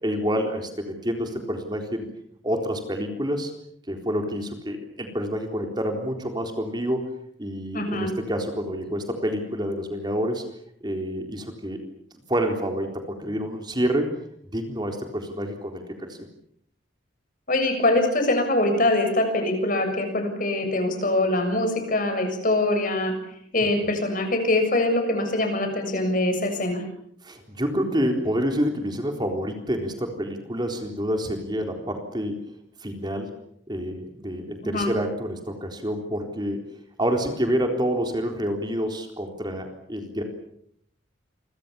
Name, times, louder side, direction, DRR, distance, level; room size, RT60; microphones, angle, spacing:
voice 1, 0.0-2.1 2.4-3.5 3.9-7.1 7.4-10.4 10.8-11.8 12.3-14.1 14.5-16.2 27.2-32.4 32.8-33.3 33.7-36.6 37.0-40.2, equal, 25° right, 4 dB, 4.0 m, -28 dB
voice 2, 7.7-8.1 17.5-23.1 23.5-26.8 34.6-34.9, left 2 dB, 45° left, 6 dB, 7.0 m, -23 dB
28.5 x 25.0 x 7.1 m, 0.69 s
head